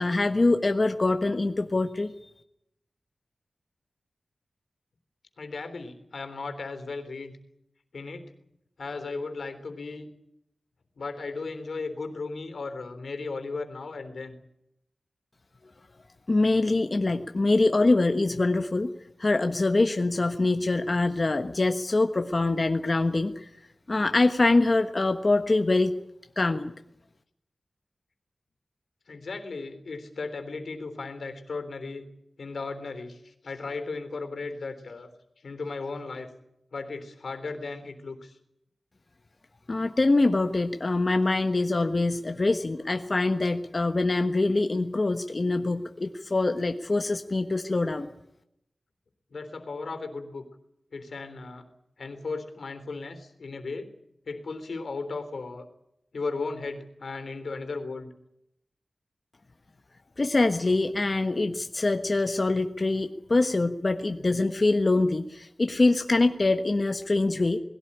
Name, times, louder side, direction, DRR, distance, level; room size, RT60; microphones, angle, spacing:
voice 1, 0.0-2.3 16.3-18.9 19.2-23.5 23.9-25.9 26.4-26.7 39.7-48.1 60.2-67.6, left 2 dB, 40° left, 6 dB, 1.3 m, -24 dB
voice 2, 5.4-7.3 7.9-8.3 8.8-10.1 11.0-14.4 29.1-32.1 32.4-35.1 35.4-36.3 36.7-38.4 49.3-50.4 50.9-51.6 52.0-53.9 54.3-55.7 56.1-58.1, left 3 dB, 80° left, 9 dB, 3.5 m, -36 dB
20.5 x 17.0 x 10.0 m, 0.79 s
wide cardioid pair, 100°, 0 cm